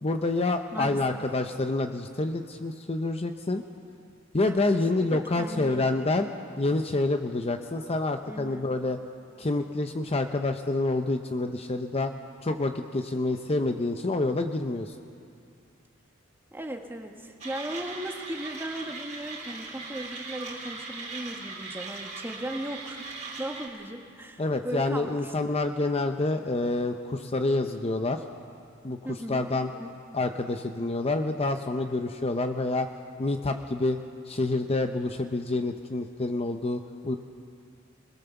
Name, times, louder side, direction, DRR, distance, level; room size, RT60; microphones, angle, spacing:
voice 1, 0.0-3.6 4.3-6.3 6.6-9.0 9.4-12.1 12.4-14.9 24.4-28.2 28.8-29.0 29.3-29.7 30.1-32.9 33.2-34.0 34.3-37.2, left 2 dB, 30° left, 6 dB, 0.7 m, -27 dB
voice 2, 0.7-1.2 4.5-4.7 5.0-6.0 8.3-8.7 16.5-23.1 23.4-25.6 29.0-29.4 29.7-29.9, right 1 dB, 10° right, 3 dB, 1.5 m, -37 dB
Mechanisms, 17.4-23.7, right 4 dB, 35° right, 3.8 m, -39 dB
21.5 x 20.0 x 7.0 m, 2.4 s
head